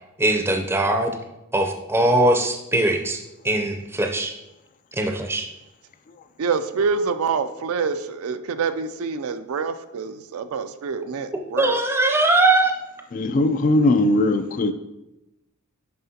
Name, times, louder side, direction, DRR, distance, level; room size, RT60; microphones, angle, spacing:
voice 1, 0.2-1.2 1.5-4.3 5.0-5.5 11.6-12.7, right 2 dB, 10° right, 4 dB, 0.5 m, -21 dB
voice 2, 6.4-11.8, right 5 dB, 70° right, 10 dB, 0.4 m, -26 dB
voice 3, 13.1-14.7, left 2 dB, 35° left, 9 dB, 0.3 m, -19 dB
9.3 x 5.8 x 2.8 m, 0.95 s
head